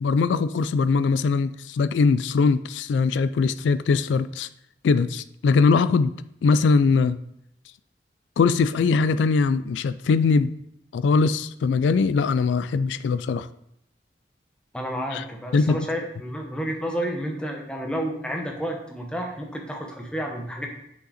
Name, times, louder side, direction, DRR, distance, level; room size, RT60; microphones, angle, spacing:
voice 1, 0.0-4.5 4.8-6.1 6.4-7.2 8.4-10.5 10.9-13.5 15.1-15.2 15.5-15.8, left 4 dB, 85° left, 14 dB, 0.3 m, -21 dB
voice 2, 14.7-20.7, equal, 5° left, 1 dB, 0.9 m, -30 dB
6.5 x 5.2 x 4.1 m, 0.77 s
head